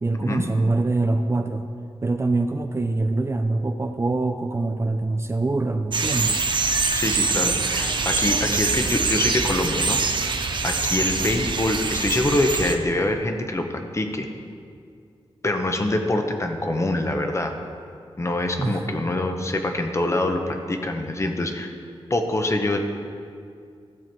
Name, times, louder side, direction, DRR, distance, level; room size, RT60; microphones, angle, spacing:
voice 1, 0.0-1.7 2.0-6.4 18.6-18.9, right 2 dB, 25° right, 6 dB, 0.5 m, -24 dB
sound 1, 5.9-12.8, right 4 dB, 50° right, 0.8 m, -24 dB
voice 2, 6.9-10.4 10.6-14.3 15.4-17.5 18.2-21.7 22.1-22.8, left 1 dB, 30° left, 4 dB, 1.0 m, -25 dB
15.0 x 7.2 x 4.6 m, 2.3 s
wide cardioid pair, 105°, 10 cm